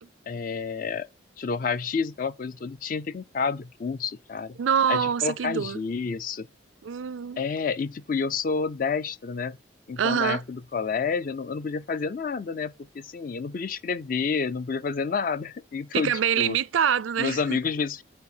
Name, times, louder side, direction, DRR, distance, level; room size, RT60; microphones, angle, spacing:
voice 1, 0.3-1.1 1.4-4.6 4.9-6.5 7.4-9.6 9.9-16.6 17.2-18.0, left 5 dB, 45° left, 0.4 m, -29 dB
voice 2, 4.6-5.8 6.8-7.4 10.0-10.4 15.9-17.6, right 8 dB, 80° right, 0.4 m, -25 dB
8.5 x 4.2 x 6.5 m
head